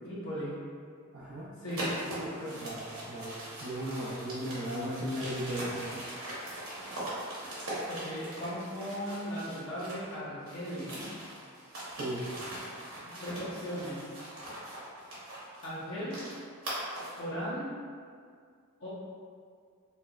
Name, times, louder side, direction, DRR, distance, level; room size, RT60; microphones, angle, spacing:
voice 1, 0.0-0.6 1.6-2.7 7.9-11.1 13.2-14.0 15.6-16.2 17.2-17.7 18.8-18.9, equal, 65° left, -10 dB, 1.0 m, -37 dB
voice 2, 1.1-1.5 2.5-2.8 3.1-6.0 12.0-12.3, equal, 90° right, -9 dB, 0.6 m, -36 dB
sound 1, 1.7-10.1 10.4-17.2, right 1 dB, 75° right, 1.1 m, -41 dB
3.3 x 3.0 x 2.3 m, 2.1 s
head